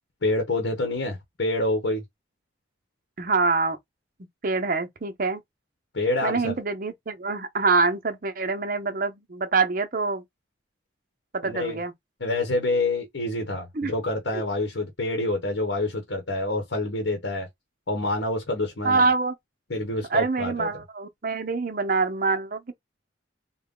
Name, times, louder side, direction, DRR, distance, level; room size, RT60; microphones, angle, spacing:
voice 1, 0.2-2.0 5.9-6.5 11.4-11.8 12.2-17.5 17.9-19.1 19.7-20.7, left 2 dB, 75° left, 1.1 m, -27 dB
voice 2, 3.2-3.8 4.4-5.4 6.2-10.2 11.3-11.9 13.7-13.9 18.8-19.3 20.1-22.7, right 4 dB, 45° right, 0.6 m, -25 dB
3.9 x 2.1 x 3.7 m
head